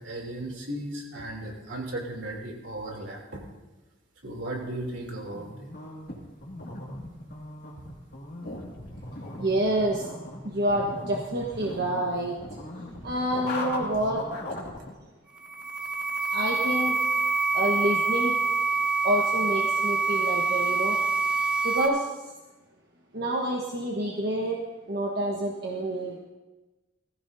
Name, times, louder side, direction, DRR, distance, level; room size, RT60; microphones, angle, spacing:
voice 1, 0.0-3.4 4.2-5.5, right 1 dB, 75° right, -1 dB, 3.1 m, -36 dB
sound 1, 5.3-14.9, left 2 dB, 55° left, 2.2 m, -39 dB
voice 2, 9.4-10.1 10.4-12.6 13.0-14.2 16.3-17.0 17.5-18.3 19.0-21.0 21.6-22.1 23.1-24.6 24.9-26.2, right 1 dB, 55° right, -2 dB, 1.3 m, -28 dB
sound 2, 15.4-21.9, right 4 dB, 5° right, 1.3 m, -26 dB
20.0 x 15.0 x 2.7 m, 1.1 s
head